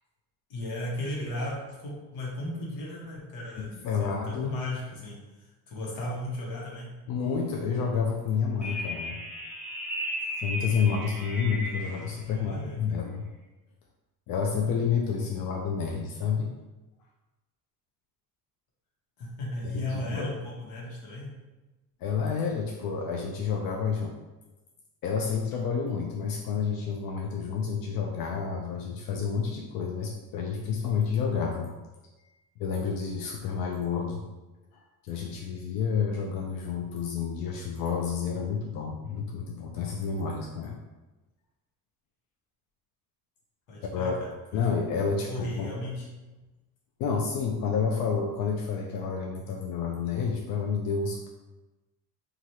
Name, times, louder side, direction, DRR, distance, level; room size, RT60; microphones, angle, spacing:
voice 1, 0.5-6.9 12.3-13.0 19.2-21.3 43.7-44.3 45.3-46.1, left 1 dB, 80° left, -4 dB, 1.1 m, -36 dB
voice 2, 3.6-4.5 7.1-9.2 10.4-13.2 14.3-16.5 19.6-20.3 22.0-24.2 25.0-31.8 32.6-34.2 35.0-40.8 43.8-44.2 44.5-45.7 47.0-51.3, left 6 dB, 60° left, 0 dB, 0.5 m, -29 dB
sound 1, 8.6-12.1, equal, 5° right, 0.3 m, -35 dB
3.0 x 2.4 x 2.7 m, 1.1 s
cardioid pair, 120°, 39 cm